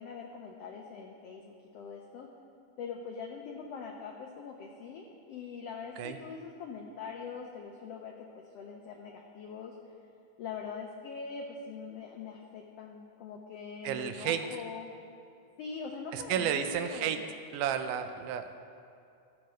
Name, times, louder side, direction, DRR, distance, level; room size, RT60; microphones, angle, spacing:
voice 1, 0.0-2.3 2.8-9.7 10.4-14.9 15.6-17.2, left 5 dB, 85° left, 0 dB, 1.3 m, -43 dB
voice 2, 13.8-14.4 16.1-17.2 17.5-18.5, right 9 dB, 85° right, 8 dB, 2.1 m, -32 dB
15.5 x 7.3 x 3.0 m, 2.6 s
omnidirectional pair, 3.5 m